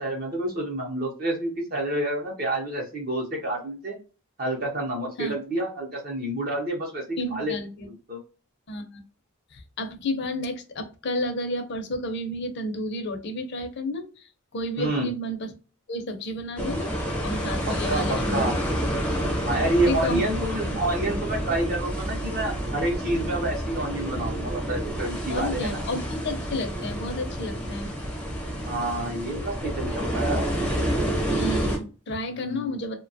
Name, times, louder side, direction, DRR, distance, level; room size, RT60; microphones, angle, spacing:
voice 1, 0.0-4.0 4.4-7.5 7.8-8.2 14.8-15.1 17.9-18.5 19.4-25.8 28.7-30.7 32.3-32.8, right 1 dB, 40° right, 0 dB, 0.6 m, -28 dB
voice 2, 7.2-7.9 8.7-9.0 9.5-15.5 15.9-17.0 17.2-18.4 19.9-20.2 20.7-20.8 25.3-27.9 31.3-33.0, left 1 dB, 50° left, 6 dB, 0.5 m, -31 dB
sound 1, 16.6-31.8, equal, 5° left, 0.5 m, -29 dB
2.7 x 2.2 x 2.6 m, 0.34 s
head